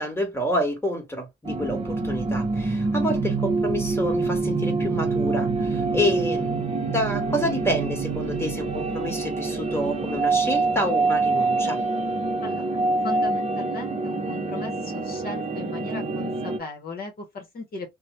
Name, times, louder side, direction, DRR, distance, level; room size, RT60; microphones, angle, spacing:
voice 1, 0.0-6.6 6.9-11.8, equal, 10° left, 1.2 m, -28 dB
sound 1, 1.4-16.6, right 3 dB, 30° right, 0.7 m, -26 dB
voice 2, 12.4-18.0, left 3 dB, 50° left, 0.9 m, -37 dB
3.1 x 2.1 x 2.7 m
cardioid pair, 90°, 20 cm